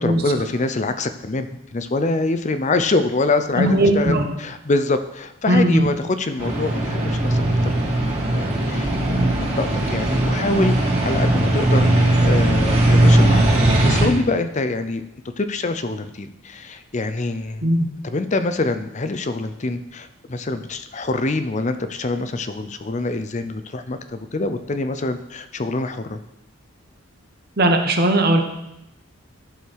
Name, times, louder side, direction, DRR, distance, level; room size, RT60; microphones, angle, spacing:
voice 1, 0.0-15.0 15.4-17.7 18.0-26.2, left 2 dB, 35° left, 9 dB, 0.5 m, -25 dB
voice 2, 3.5-4.2 5.5-5.9 17.6-17.9 27.6-28.4, right 1 dB, 45° right, 5 dB, 1.1 m, -17 dB
sound 1, 6.4-14.1, right 1 dB, 30° right, 2.3 m, -18 dB
11.5 x 6.5 x 4.7 m, 0.88 s
head